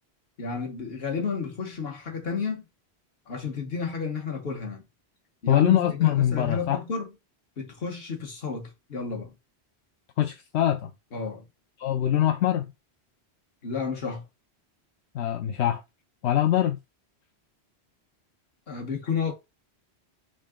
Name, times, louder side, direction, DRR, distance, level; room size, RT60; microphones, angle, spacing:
voice 1, 0.4-2.6 3.3-4.8 5.4-7.1 7.6-9.3 11.1-11.5 13.6-14.2 18.7-19.3, left 5 dB, 65° left, 1.5 m, -31 dB
voice 2, 5.5-6.8 10.2-10.9 11.8-12.7 15.1-15.8 16.2-16.8, left 11 dB, 85° left, 0.9 m, -23 dB
3.9 x 3.7 x 3.7 m
omnidirectional pair, 1.1 m